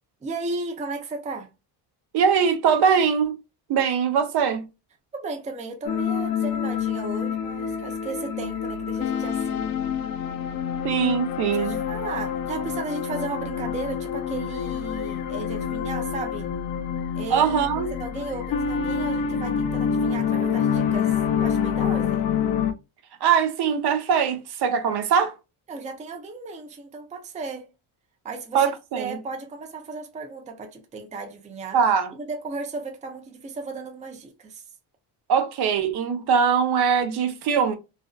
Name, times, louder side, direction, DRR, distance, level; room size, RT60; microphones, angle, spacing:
voice 1, 0.2-1.5 5.1-9.7 11.5-16.5 17.2-17.5 17.8-22.3 25.7-27.7 28.2-28.6 29.0-31.8 32.1-34.6, right 3 dB, 15° right, 0.5 m, -35 dB
voice 2, 2.1-3.3 3.7-4.7 10.8-11.8 17.3-17.9 23.2-25.3 28.5-29.2 31.7-32.1 35.3-37.8, right 7 dB, 60° right, 0.6 m, -22 dB
sound 1, 5.8-22.7, left 7 dB, 50° left, 0.5 m, -27 dB
2.5 x 2.2 x 2.2 m
cardioid pair, 100°, 44 cm